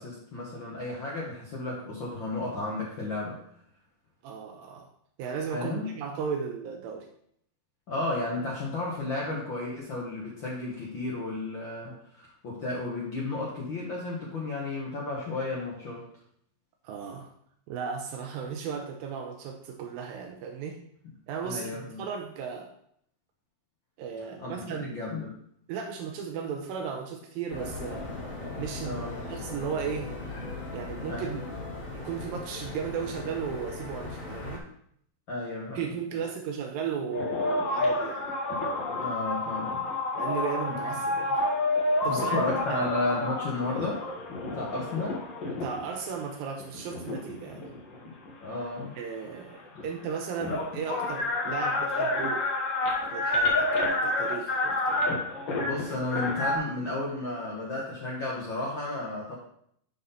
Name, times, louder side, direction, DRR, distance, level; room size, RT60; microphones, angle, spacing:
voice 1, 0.0-3.4 5.5-5.9 7.9-16.0 21.4-22.0 24.4-25.3 28.8-29.2 31.1-31.4 35.3-35.8 39.0-39.9 40.7-40.8 42.0-44.1 44.5-45.2 48.4-48.9 49.7-49.8 55.6-59.3, left 2 dB, 85° left, -4 dB, 1.0 m, -33 dB
voice 2, 4.2-4.9 5.2-7.1 16.8-17.3 17.7-20.8 21.3-22.7 24.0-25.0 25.7-28.1 28.5-29.0 29.3-30.1 30.7-31.4 31.9-34.6 35.7-38.3 40.1-41.4 42.0-42.8 45.6-47.7 49.0-52.5 53.1-55.0, right 6 dB, 85° right, 3 dB, 2.4 m, -35 dB
sound 1, 27.5-34.6, left 2 dB, 40° left, 1.1 m, -38 dB
sound 2, 37.1-45.9 46.6-48.3 49.5-49.6 49.8-56.6, left 2 dB, 65° left, 1.1 m, -29 dB
11.5 x 4.0 x 4.1 m, 0.68 s
omnidirectional pair, 4.2 m